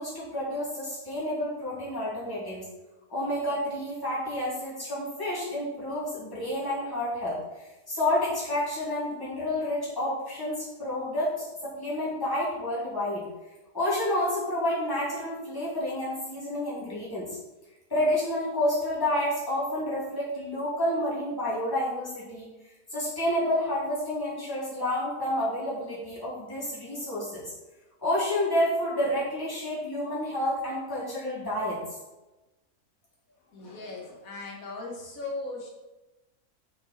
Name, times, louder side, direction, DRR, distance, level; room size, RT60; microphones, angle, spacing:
voice 1, 0.0-2.6 3.1-13.3 13.7-17.3 17.9-22.5 22.9-27.5 28.0-31.8, left 1 dB, 15° left, -9 dB, 2.8 m, -29 dB
voice 2, 33.5-35.7, left 2 dB, 65° left, -1 dB, 2.0 m, -38 dB
6.5 x 6.3 x 4.3 m, 1.1 s
omnidirectional pair, 1.6 m